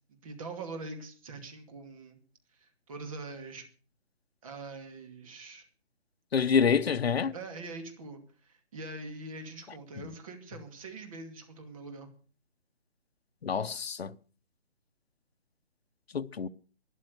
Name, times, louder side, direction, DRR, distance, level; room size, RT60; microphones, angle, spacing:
voice 1, 0.1-2.2 2.5-3.7 4.4-5.7 7.3-12.1, right 3 dB, 30° right, 2.5 m, -43 dB
voice 2, 6.3-7.3 13.4-14.1 16.1-16.5, left 6 dB, 65° left, 0.9 m, -27 dB
12.5 x 11.0 x 6.6 m
hypercardioid pair, 165°, 34 cm